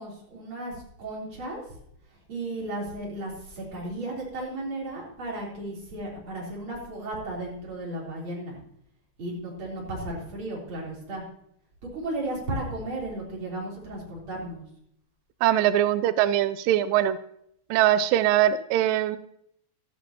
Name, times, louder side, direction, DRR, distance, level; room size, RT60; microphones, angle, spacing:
voice 1, 0.0-1.6 2.1-8.6 9.2-11.2 11.9-14.6, right 1 dB, 35° right, -4 dB, 4.2 m, -34 dB
voice 2, 15.4-17.2 17.7-19.2, right 12 dB, 90° right, 13 dB, 1.9 m, -22 dB
14.0 x 13.0 x 2.9 m, 0.72 s
omnidirectional pair, 4.5 m